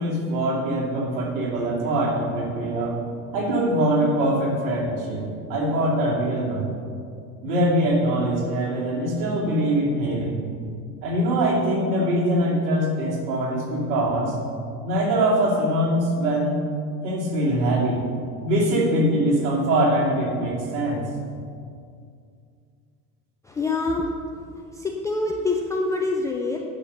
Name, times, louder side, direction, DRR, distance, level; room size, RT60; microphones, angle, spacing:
voice 1, 0.0-3.0 3.3-5.2 5.5-6.7 7.4-10.4 11.0-14.4 14.8-16.7 17.0-18.0 18.4-21.0, right 1 dB, 55° right, -3 dB, 2.7 m, -23 dB
voice 2, 23.4-24.1 24.7-26.6, left 3 dB, 10° left, 0 dB, 0.3 m, -25 dB
10.5 x 5.7 x 6.7 m, 2.4 s
figure-of-eight pair, 75°, 48 cm